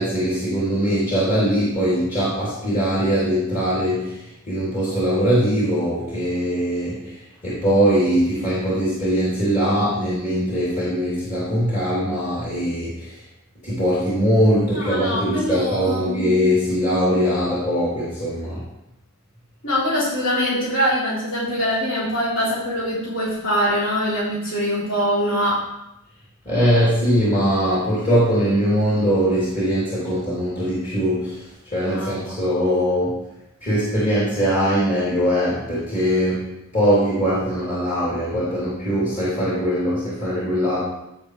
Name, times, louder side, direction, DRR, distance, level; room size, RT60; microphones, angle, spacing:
voice 1, 0.0-4.2 4.5-6.9 7.4-12.9 13.6-18.6 26.5-31.3 31.7-33.2 33.6-36.5 36.7-40.8, equal, 35° left, -10 dB, 3.5 m, -21 dB
voice 2, 14.7-16.3 19.6-25.6 31.9-32.2, equal, 60° left, -8 dB, 3.7 m, -23 dB
16.0 x 5.3 x 3.4 m, 0.85 s
head